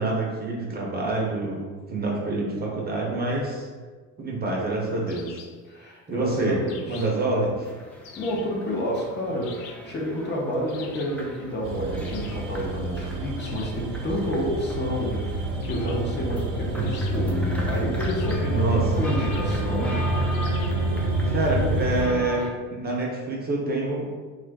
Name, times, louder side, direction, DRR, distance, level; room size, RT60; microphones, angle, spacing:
voice 1, 0.0-3.7 4.2-5.4 6.1-6.6 6.9-7.7 16.7-16.8 18.4-18.8 21.3-24.1, right 2 dB, 30° right, -2 dB, 0.7 m, -27 dB
sound 1, 5.1-5.6 6.7-7.3 8.0-8.6 9.4-9.9 10.7-11.2 12.0-12.5 13.4-13.8 15.6-16.1 16.8-17.5 18.0-18.6 19.2-19.6 20.3-20.9, left 7 dB, 70° left, 0.5 m, -46 dB
voice 2, 5.7-7.1 8.2-18.6 18.9-20.0, equal, 30° left, -2 dB, 0.7 m, -30 dB
sound 2, 7.5-22.5, left 1 dB, 5° left, 0.4 m, -40 dB
sound 3, 11.6-22.1, right 1 dB, 60° right, 0.8 m, -27 dB
3.0 x 2.4 x 3.4 m, 1.4 s
supercardioid pair, 110°, 35 cm